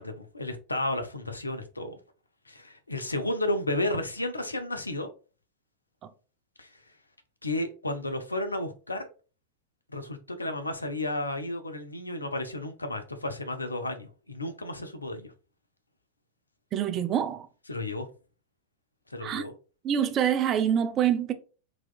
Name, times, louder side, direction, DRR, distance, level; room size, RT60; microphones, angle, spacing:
voice 1, 0.0-2.0 2.5-5.1 6.6-6.7 7.4-9.1 9.9-15.3 17.7-18.1 19.1-19.5, left 1 dB, 80° left, 0.6 m, -32 dB
voice 2, 16.7-17.5 19.2-19.4 19.8-21.3, right 9 dB, 30° right, 0.4 m, -26 dB
4.1 x 2.9 x 2.3 m
figure-of-eight pair, 90°, 0 cm